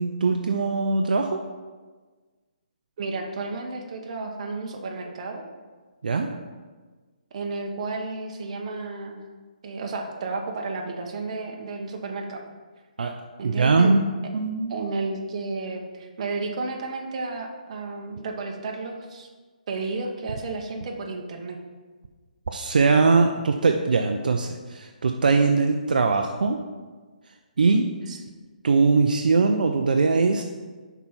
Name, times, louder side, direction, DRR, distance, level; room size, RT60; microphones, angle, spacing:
voice 1, 0.0-1.4 6.0-6.3 13.0-13.1 13.4-14.1 14.3-14.8 22.5-26.6 27.6-27.9 28.6-30.4, right 4 dB, 70° right, 4 dB, 0.5 m, -21 dB
voice 2, 3.0-5.5 7.3-9.2 9.6-12.4 13.4-14.0 14.7-19.3 19.7-21.6 28.1-28.2, right 3 dB, 45° right, 2 dB, 1.1 m, -32 dB
5.9 x 4.6 x 5.6 m, 1.4 s
hypercardioid pair, 155°, 5 cm